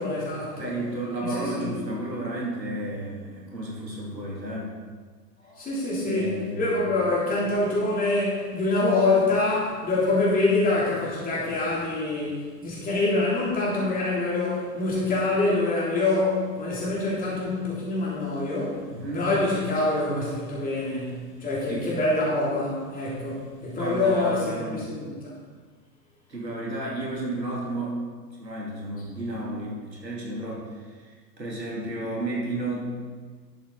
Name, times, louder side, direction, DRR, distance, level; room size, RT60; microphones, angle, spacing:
voice 1, 0.0-0.7 1.4-1.7 5.4-18.9 19.1-25.3, left 2 dB, 15° left, -6 dB, 3.4 m, -25 dB
voice 2, 0.6-4.7 6.1-6.8 18.9-19.3 21.7-21.9 23.7-24.8 26.3-28.0 28.4-32.9, right 1 dB, 80° right, -3 dB, 2.8 m, -32 dB
11.5 x 7.6 x 4.1 m, 1.5 s
figure-of-eight pair, 100°, 50 cm